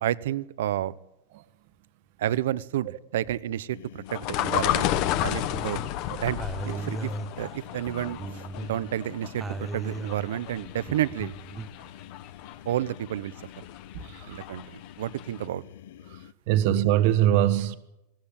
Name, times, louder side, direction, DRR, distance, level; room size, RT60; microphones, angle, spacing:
voice 1, 0.0-0.9 2.2-4.9 5.2-6.4 6.6-7.1 7.4-8.2 8.6-11.3 12.6-13.3 14.3-15.6, right 12 dB, 75° right, 0.9 m, -30 dB
sound 1, 3.7-16.3, left 12 dB, 65° left, 0.9 m, -48 dB
sound 2, 4.1-14.9 15.2-15.3, left 12 dB, 35° left, 1.2 m, -32 dB
sound 3, 4.4-5.9 6.4-8.9 9.4-11.7, right 3 dB, 10° right, 0.7 m, -37 dB
voice 2, 13.9-14.5 16.1-17.8, right 12 dB, 45° right, 1.5 m, -24 dB
20.5 x 18.5 x 9.0 m
supercardioid pair, 175°, 0 cm